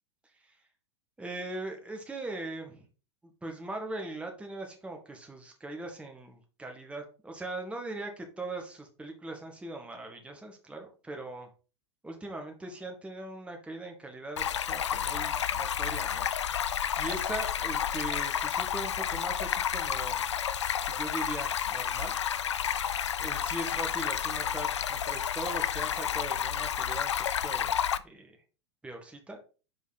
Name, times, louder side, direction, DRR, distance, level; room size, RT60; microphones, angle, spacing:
voice 1, 1.2-2.9 3.4-11.5 12.0-20.3 20.8-22.2 23.2-27.1 27.4-27.8 28.0-28.4 28.8-29.4, right 2 dB, 10° right, 3 dB, 1.7 m, -40 dB
Stream, 14.4-28.0, left 9 dB, 85° left, 0.4 m, -31 dB
5.4 x 4.5 x 4.2 m, 0.34 s
hypercardioid pair, 100°, 14 cm